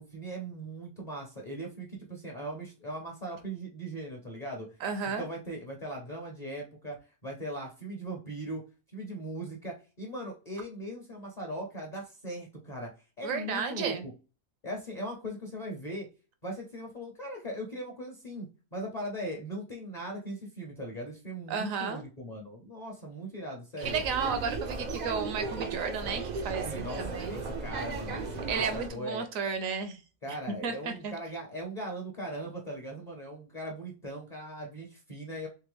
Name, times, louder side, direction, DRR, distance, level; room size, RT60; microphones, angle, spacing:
voice 1, 0.0-4.7 5.2-7.0 7.2-8.6 8.9-12.9 13.2-13.9 14.6-16.1 16.4-24.0 26.6-29.2 30.2-35.5, right 1 dB, 35° left, 0.8 m, -39 dB
voice 2, 4.8-5.3 13.2-14.0 21.5-22.0 23.8-27.4 28.5-30.0 30.3-30.4 30.6-31.1, right 6 dB, 70° right, 1.1 m, -33 dB
tegel airport, 23.8-28.9, right 3 dB, 55° right, 0.5 m, -36 dB
3.4 x 3.2 x 3.4 m
omnidirectional pair, 1.5 m